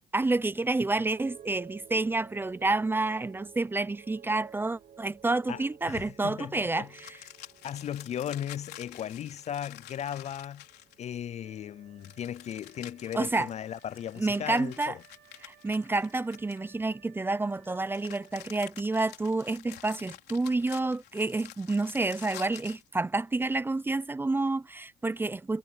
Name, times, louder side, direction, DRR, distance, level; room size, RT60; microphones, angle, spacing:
voice 1, 0.1-7.2 13.1-13.5 14.2-14.9 15.4-25.6, right 2 dB, 15° right, 0.5 m, -29 dB
sound 1, 1.2-11.5 11.8-12.4, right 8 dB, 50° right, 6.4 m, -53 dB
voice 2, 5.5-6.9 7.4-10.6 11.0-15.0, left 10 dB, 40° left, 0.4 m, -37 dB
sound 2, 6.9-11.2 12.0-16.9 17.6-22.9, left 13 dB, 75° left, 3.8 m, -49 dB
Wind instrument woodwind instrument, 11.4-19.0, right 11 dB, 75° right, 3.4 m, -61 dB
cardioid pair, 110°, 17 cm